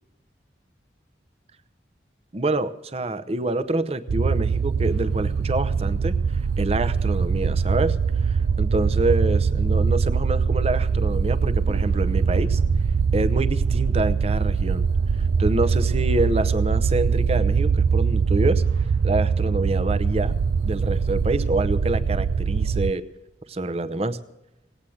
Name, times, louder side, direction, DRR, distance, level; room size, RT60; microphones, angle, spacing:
voice 1, 2.3-6.1 6.6-12.6 13.1-14.9 15.2-18.6 19.0-20.4 20.6-23.0 23.5-24.2, right 2 dB, 35° right, 12 dB, 0.7 m, -26 dB
sound 1, 4.1-22.9, right 5 dB, 80° right, 0.4 m, -22 dB
18.5 x 8.7 x 7.8 m, 0.99 s
head